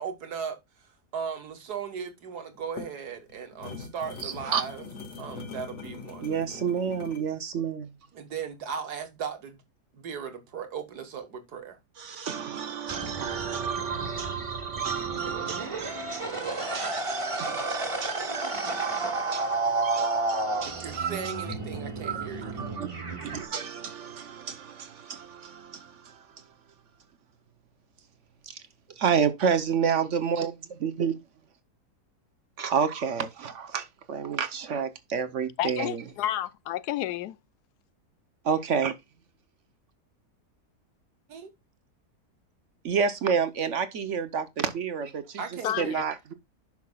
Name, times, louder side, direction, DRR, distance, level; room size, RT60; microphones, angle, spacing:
voice 1, 0.0-4.9 5.2-6.7 8.1-9.6 9.9-11.8 20.6-22.7 41.3-41.5 45.4-46.0, right 6 dB, 70° right, 1.9 m, -37 dB
sound 1, 2.5-7.3, left 4 dB, 55° left, 2.4 m, -42 dB
voice 2, 4.2-4.6 6.2-7.9 12.0-21.5 22.0-26.3 28.4-28.6 29.0-31.2 32.6-36.0 38.4-38.9 42.8-45.4 45.8-46.3, right 7 dB, 55° right, 0.9 m, -30 dB
sound 2, 12.9-23.5, right 2 dB, 20° right, 1.4 m, -32 dB
voice 3, 35.6-37.4 45.6-46.0, left 13 dB, 80° left, 1.1 m, -30 dB
10.5 x 5.9 x 2.3 m
omnidirectional pair, 1.7 m